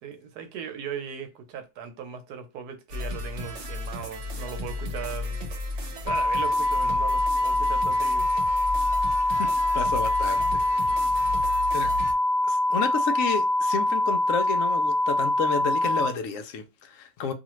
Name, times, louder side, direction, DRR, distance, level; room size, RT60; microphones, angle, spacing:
voice 1, 0.0-5.4 5.9-8.3 11.0-11.3, right 7 dB, 90° right, 1.2 m, -38 dB
sound 1, 2.9-12.1, left 2 dB, 55° right, 1.0 m, -34 dB
sound 2, 6.1-16.1, left 1 dB, 40° left, 0.6 m, -24 dB
voice 2, 9.3-10.9 11.7-11.9 12.5-17.3, left 5 dB, 70° left, 0.9 m, -31 dB
2.7 x 2.4 x 3.0 m
omnidirectional pair, 1.6 m